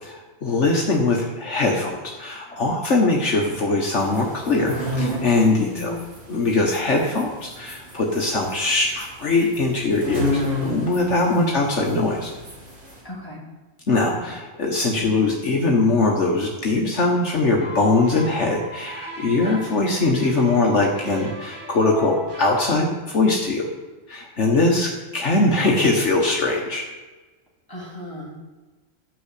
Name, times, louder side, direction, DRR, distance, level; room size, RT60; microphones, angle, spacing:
voice 1, 0.0-5.9 6.3-12.3 13.9-23.7 24.1-26.8, left 3 dB, 60° left, -1 dB, 1.6 m, -21 dB
sound 1, 3.9-13.0, left 1 dB, 70° right, 4.0 m, -31 dB
voice 2, 5.6-6.0 11.0-11.5 13.0-13.4 14.2-14.4 27.7-28.5, left 2 dB, 15° left, -4 dB, 3.0 m, -33 dB
sound 2, 17.6-22.7, right 2 dB, 40° right, 2.3 m, -37 dB
12.0 x 6.3 x 8.3 m, 1.2 s
omnidirectional pair, 1.3 m